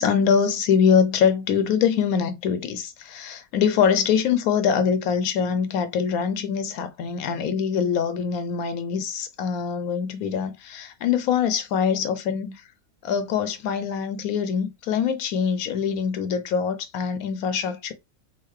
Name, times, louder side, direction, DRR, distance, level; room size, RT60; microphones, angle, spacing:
voice 1, 0.0-12.5 13.0-17.9, left 7 dB, 70° left, 1.1 m, -23 dB
3.8 x 2.9 x 3.2 m
omnidirectional pair, 1.6 m